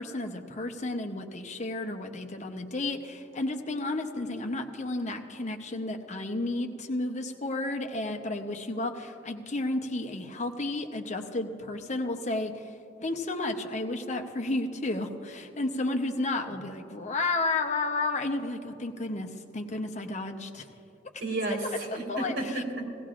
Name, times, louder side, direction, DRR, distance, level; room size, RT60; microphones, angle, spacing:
voice 1, 0.0-12.7 13.0-20.6 21.9-22.6, left 2 dB, 40° left, 5 dB, 0.8 m, -32 dB
voice 2, 21.2-22.9, right 2 dB, 90° right, 0 dB, 2.5 m, -32 dB
17.0 x 17.0 x 2.5 m, 2.9 s
head